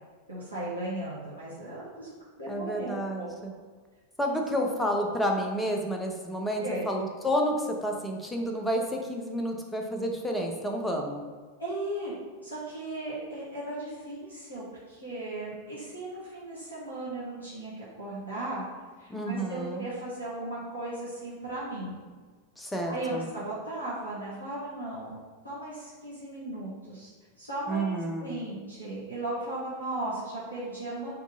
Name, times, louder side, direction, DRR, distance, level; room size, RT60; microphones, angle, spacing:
voice 1, 0.3-2.1 2.4-3.3 6.6-6.9 11.6-12.1 12.4-18.6 19.0-21.9 22.9-27.1 27.4-31.1, right 1 dB, 90° right, -10 dB, 1.4 m, -36 dB
voice 2, 2.5-3.5 4.2-11.3 19.1-19.9 22.6-23.3 27.7-28.3, equal, 10° left, 1 dB, 0.6 m, -30 dB
4.6 x 2.8 x 3.9 m, 1.5 s
figure-of-eight pair, 90°, 0 cm